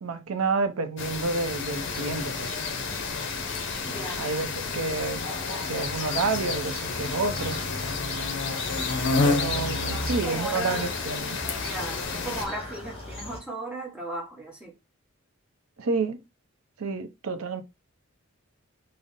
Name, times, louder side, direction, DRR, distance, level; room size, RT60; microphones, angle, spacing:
voice 1, 0.0-2.5 4.2-5.2 5.6-7.6 9.2-11.4 15.8-16.2 16.8-17.6, right 3 dB, 85° right, 0.6 m, -29 dB
sound 1, 1.0-12.5, left 4 dB, 55° left, 0.6 m, -30 dB
sound 2, 1.6-13.4, left 1 dB, 25° left, 1.3 m, -38 dB
voice 2, 3.9-4.3 9.0-9.5 9.8-10.9 11.6-14.7, right 1 dB, 5° right, 1.1 m, -36 dB
5.1 x 2.0 x 2.6 m
head